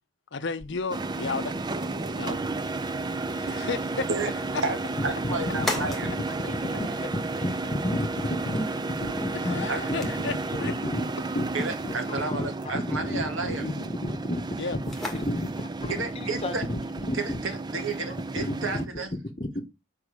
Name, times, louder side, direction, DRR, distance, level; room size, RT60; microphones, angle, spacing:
voice 1, 0.3-1.6 2.2-2.4 3.3-4.1 4.5-4.6 9.4-10.8 14.6-14.8, left 4 dB, 55° left, 0.6 m, -33 dB
sound 1, 0.6-19.0, left 1 dB, ahead, 1.6 m, -43 dB
sound 2, 0.9-18.9, right 3 dB, 20° right, 0.4 m, -33 dB
voice 2, 5.0-6.1 9.7-9.8 11.5-13.7 15.9-16.6 17.1-19.1, right 3 dB, 70° right, 1.7 m, -31 dB
voice 3, 6.2-7.6, right 2 dB, 40° right, 4.4 m, -46 dB
voice 4, 9.0-9.5 10.0-10.1 10.6-11.0 11.3-11.4 11.8-13.7 14.0-14.4 15.1-16.5 17.1-17.2 18.4-18.5 19.4-19.6, left 1 dB, 30° left, 1.0 m, -31 dB
7.0 x 5.2 x 4.8 m
head